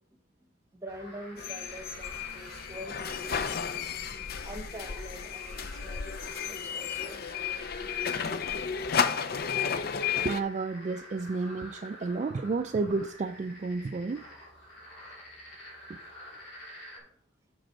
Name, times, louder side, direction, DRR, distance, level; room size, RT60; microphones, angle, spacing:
voice 1, 0.7-3.9 4.4-7.7 16.9-17.1, equal, 15° right, 6 dB, 1.1 m, -45 dB
sound 1, 0.9-17.0, equal, 70° left, 3.7 m, -49 dB
sound 2, 1.4-10.4, left 7 dB, 50° left, 0.5 m, -33 dB
voice 2, 10.2-14.3 15.9-16.0, right 3 dB, 35° right, 7 dB, 0.3 m, -31 dB
7.7 x 6.1 x 4.5 m, 0.64 s
head